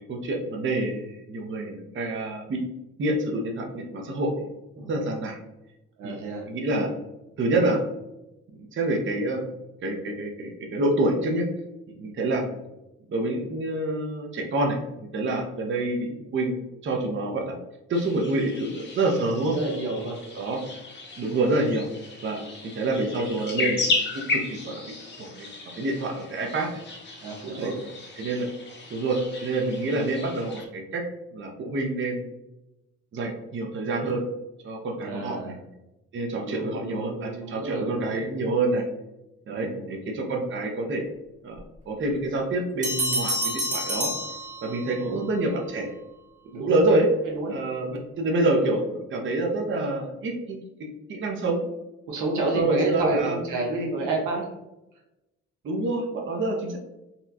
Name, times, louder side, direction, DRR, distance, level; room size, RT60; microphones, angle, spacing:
voice 1, 0.0-2.6 3.0-5.4 6.0-6.2 6.5-6.9 7.4-7.8 8.7-9.5 9.8-11.5 12.0-12.4 13.1-17.5 17.9-19.6 20.4-20.6 21.2-21.9 22.2-25.5 25.8-26.7 27.5-27.7 28.2-28.5 28.9-31.0 31.3-32.2 33.1-34.2 34.6-35.5 36.1-38.8 39.5-41.1 41.4-41.6 41.9-44.1 44.6-45.9 46.6-47.1 47.5-51.6 52.4-53.4 55.6-56.8, right 2 dB, 40° right, 1 dB, 0.7 m, -27 dB
voice 2, 6.0-6.4 19.5-20.2 27.2-27.8 35.0-35.6 36.4-38.2 39.5-39.9 45.0-45.2 46.5-46.9 47.3-47.6 52.1-54.5, right 2 dB, 85° right, -1 dB, 1.0 m, -30 dB
sound 1, 17.9-30.7, left 3 dB, 35° left, 0.8 m, -34 dB
sound 2, 42.8-45.1, right 1 dB, 25° right, 1.2 m, -28 dB
4.1 x 2.3 x 2.7 m, 0.95 s
cardioid pair, 90°, 30 cm